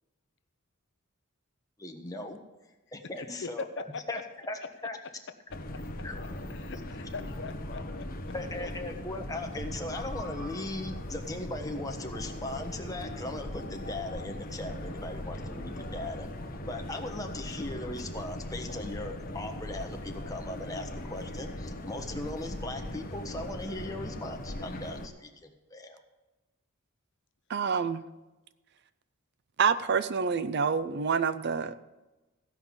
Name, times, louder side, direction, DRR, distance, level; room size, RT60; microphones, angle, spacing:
voice 1, 1.8-2.4 2.9-4.2 4.5-5.0 6.0-6.1 8.3-16.3 16.7-26.0, left 2 dB, 15° left, 3 dB, 1.3 m, -38 dB
voice 2, 3.2-4.0 6.5-8.3, left 4 dB, 60° left, 10 dB, 0.7 m, -41 dB
sound 1, 5.5-25.1, left 1 dB, 40° left, 1.1 m, -39 dB
voice 3, 27.5-28.0 29.6-31.8, right 6 dB, 50° right, 14 dB, 0.5 m, -27 dB
15.5 x 5.6 x 8.8 m, 1.1 s
head